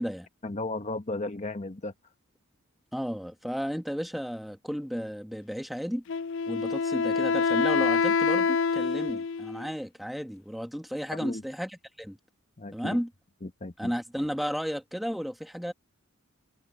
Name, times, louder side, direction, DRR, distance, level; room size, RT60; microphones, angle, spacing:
voice 1, 0.4-1.9 11.1-11.4 12.6-13.0 13.4-13.9, left 2 dB, 35° left, 1.2 m, -35 dB
voice 2, 2.9-6.0 6.5-11.7 12.0-12.2 12.7-13.1 13.8-15.7, equal, ahead, 1.7 m, -33 dB
Wind instrument woodwind instrument, 6.1-9.7, left 5 dB, 65° left, 0.4 m, -26 dB
head